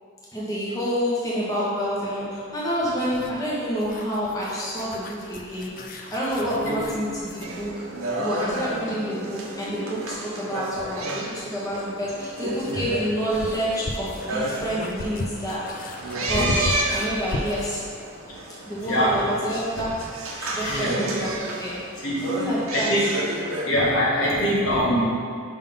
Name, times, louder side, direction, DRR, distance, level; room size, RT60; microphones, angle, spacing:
voice 1, 0.3-7.9 8.2-15.9 16.3-17.8 18.7-20.0 20.4-21.8 22.2-22.9, equal, 15° left, -8 dB, 1.1 m, -28 dB
sound 1, 3.0-7.6 9.9-10.0 12.0-17.8, left 2 dB, 40° left, 0.4 m, -35 dB
sound 2, 7.4-23.9, right 1 dB, 85° right, 0.8 m, -31 dB
voice 2, 18.9-19.2 20.6-20.9 22.0-22.3 22.7-23.1 23.6-25.0, equal, 75° left, -6 dB, 1.5 m, -23 dB
5.3 x 3.7 x 5.4 m, 2.2 s
head